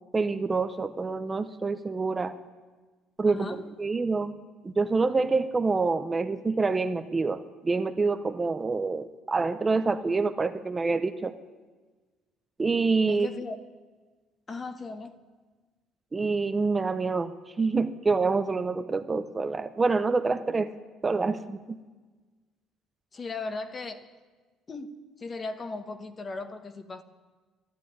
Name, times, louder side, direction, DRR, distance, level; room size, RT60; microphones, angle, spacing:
voice 1, 0.1-2.4 3.2-4.3 4.6-11.3 12.6-13.3 16.1-20.7 21.0-21.8, right 4 dB, 20° right, 0.6 m, -27 dB
voice 2, 3.3-3.6 13.1-13.6 14.5-15.2 23.1-24.1 24.7-24.9 25.2-27.0, left 3 dB, 30° left, 1.1 m, -37 dB
12.5 x 12.0 x 9.5 m
cardioid pair, 115°, 0 cm